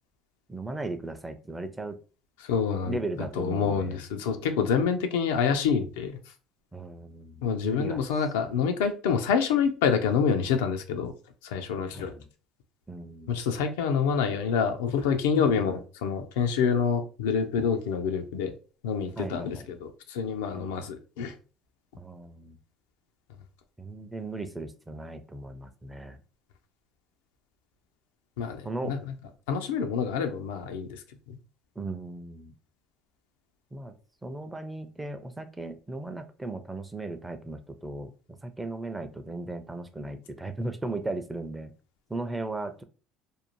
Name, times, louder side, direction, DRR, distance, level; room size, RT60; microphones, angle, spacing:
voice 1, 0.5-2.0 2.9-4.0 6.7-8.0 11.9-12.3 12.9-13.4 19.2-19.7 20.5-20.9 22.0-22.6 23.8-26.2 28.6-29.0 31.8-32.5 33.7-34.0 34.2-41.7 42.1-42.8, right 2 dB, 10° right, 0.4 m, -37 dB
voice 2, 2.4-6.2 7.4-11.1 11.4-12.2 13.3-18.6 18.8-21.3 28.4-29.1 29.5-31.4, left 6 dB, 90° left, 0.4 m, -27 dB
2.6 x 2.0 x 2.9 m
supercardioid pair, 90°, 0 cm